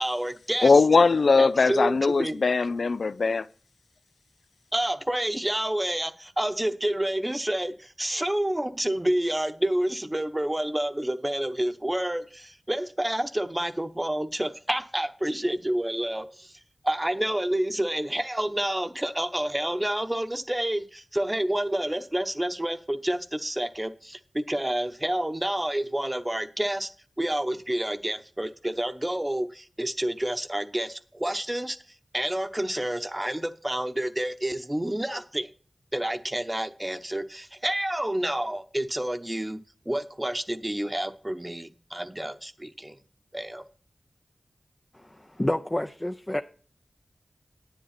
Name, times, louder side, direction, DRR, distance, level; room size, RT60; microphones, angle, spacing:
voice 1, 0.0-0.8 1.4-2.4 4.7-26.9 27.2-31.8 32.1-35.5 35.9-39.6 39.9-43.0 43.3-43.6, right 1 dB, 15° right, 0.9 m, -29 dB
voice 2, 0.6-3.5, left 4 dB, 85° left, 0.4 m, -20 dB
voice 3, 44.9-46.4, left 1 dB, 20° left, 0.6 m, -29 dB
10.5 x 9.6 x 4.2 m
wide cardioid pair, 65°, 0 cm